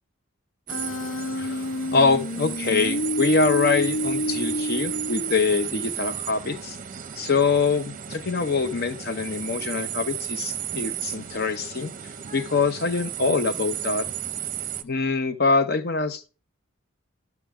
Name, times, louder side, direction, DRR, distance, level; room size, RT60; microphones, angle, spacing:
Human voice, 0.7-5.7, left 1 dB, 85° left, 1.1 m, -29 dB
sound 1, 0.7-14.8, right 10 dB, 40° right, 0.6 m, -34 dB
voice 1, 1.4-6.8 7.2-11.9 12.3-14.1 14.8-16.3, left 4 dB, 50° left, 0.8 m, -24 dB
11.5 x 6.0 x 3.6 m
head